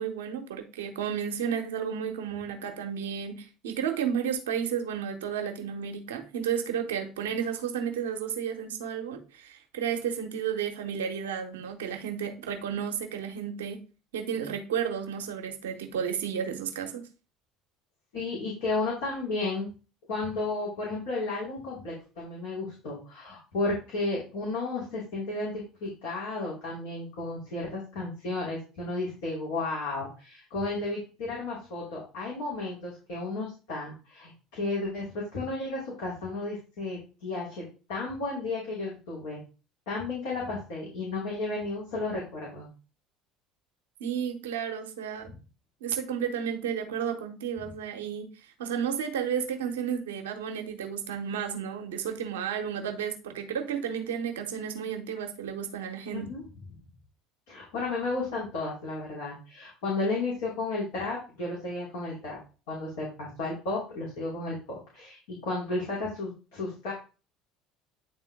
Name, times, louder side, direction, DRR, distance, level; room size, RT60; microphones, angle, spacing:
voice 1, 0.0-13.8 14.1-17.1 44.0-45.3 45.8-48.3 48.6-56.3, right 8 dB, 80° right, 1.1 m, -32 dB
voice 2, 18.1-19.7 20.1-39.4 39.9-42.7 45.3-45.4 56.1-56.4 57.5-62.4 62.7-66.9, left 2 dB, 75° left, 3.1 m, -33 dB
9.4 x 3.7 x 3.6 m
hypercardioid pair, 65°, 0 cm